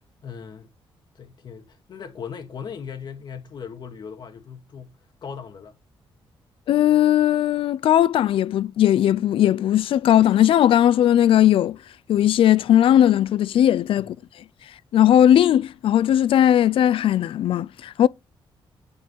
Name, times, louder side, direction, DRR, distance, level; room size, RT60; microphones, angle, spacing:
voice 1, 0.2-0.7 1.1-5.8 14.0-14.1, left 7 dB, 50° left, 2.2 m, -38 dB
voice 2, 6.7-11.8 12.1-14.2 14.9-18.1, left 11 dB, 70° left, 0.5 m, -18 dB
11.5 x 5.4 x 7.0 m
wide cardioid pair, 165°, 10 cm